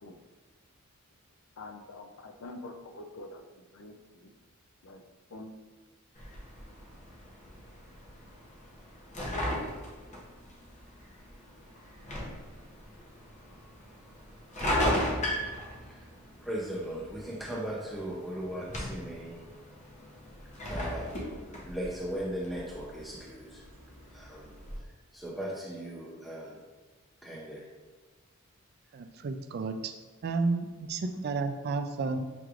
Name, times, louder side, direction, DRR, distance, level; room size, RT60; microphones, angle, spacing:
voice 1, 1.6-3.4 3.7-3.9 4.2-4.3 4.8-5.0 5.3-5.5, left 2 dB, 65° left, 6 dB, 0.4 m, -45 dB
sound 1, 6.2-24.8, equal, 35° left, 0.8 m, -37 dB
voice 2, 16.4-19.4 20.6-23.6 24.1-24.5 25.1-26.6 27.2-27.6 31.1-31.2, right 1 dB, ahead, -7 dB, 0.6 m, -38 dB
voice 3, 28.9-30.0 30.2-32.2, right 3 dB, 50° right, 8 dB, 0.3 m, -31 dB
5.9 x 3.1 x 2.4 m, 1.3 s
head